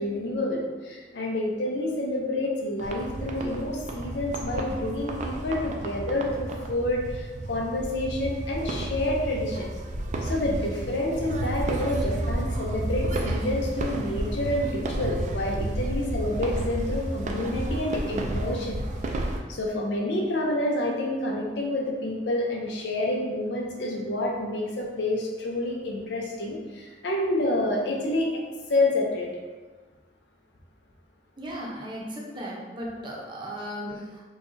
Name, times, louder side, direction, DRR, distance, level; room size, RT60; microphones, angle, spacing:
voice 1, 0.0-9.7 10.2-18.8 19.5-28.3 28.7-29.3, left 1 dB, 75° left, -1 dB, 0.6 m, -28 dB
sound 1, 2.8-19.4, right 1 dB, 45° right, 0.4 m, -31 dB
voice 2, 31.4-34.2, equal, 30° right, -4 dB, 0.7 m, -36 dB
4.6 x 2.3 x 2.7 m, 1.3 s
head